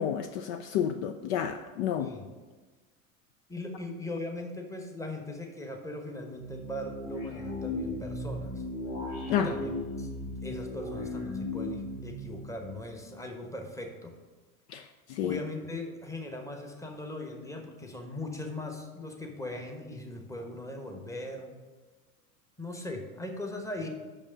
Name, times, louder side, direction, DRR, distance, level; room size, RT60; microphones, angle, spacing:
voice 1, 0.0-2.1 9.3-9.5 14.7-15.4, left 9 dB, 55° left, 8 dB, 0.5 m, -30 dB
voice 2, 3.5-8.6 9.3-14.1 15.2-21.5 22.6-23.9, left 1 dB, 5° left, 3 dB, 1.1 m, -39 dB
sound 1, 6.3-13.5, left 1 dB, 70° left, 1.8 m, -37 dB
6.1 x 5.4 x 6.3 m, 1.3 s
figure-of-eight pair, 75°, 43 cm